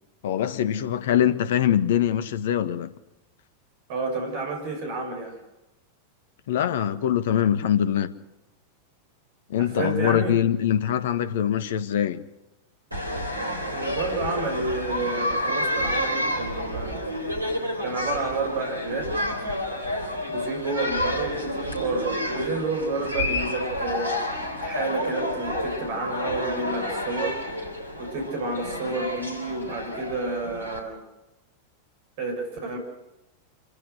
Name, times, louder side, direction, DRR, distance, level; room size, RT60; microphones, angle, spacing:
voice 1, 0.2-2.9 6.5-8.1 9.5-12.2, left 10 dB, 55° left, 1.4 m, -23 dB
voice 2, 3.9-5.4 9.6-10.4 13.7-17.0 17.8-19.2 20.3-24.1 24.6-27.4 28.0-31.0 32.2-32.8, right 3 dB, 50° right, 6.5 m, -30 dB
sound 1, 12.9-30.8, left 1 dB, 85° right, 3.6 m, -30 dB
26.5 x 15.5 x 6.5 m
figure-of-eight pair, 90°, 0 cm